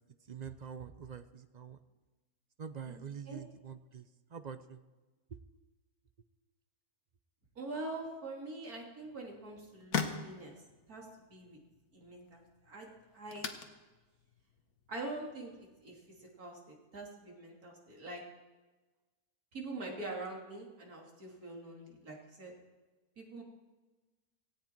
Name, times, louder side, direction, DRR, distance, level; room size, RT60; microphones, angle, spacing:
voice 1, 0.3-1.8 2.6-4.8 5.3-5.4, right 7 dB, 45° right, 10 dB, 0.5 m, -45 dB
voice 2, 2.9-3.4 7.6-10.5 10.9-11.6 11.9-13.5 14.9-18.2 19.5-22.5 23.2-23.4, right 2 dB, 75° right, -1 dB, 3.4 m, -44 dB
sound 1, 9.0-16.3, left 6 dB, 75° left, 1.7 m, -44 dB
17.5 x 16.0 x 4.6 m, 1.2 s
omnidirectional pair, 1.6 m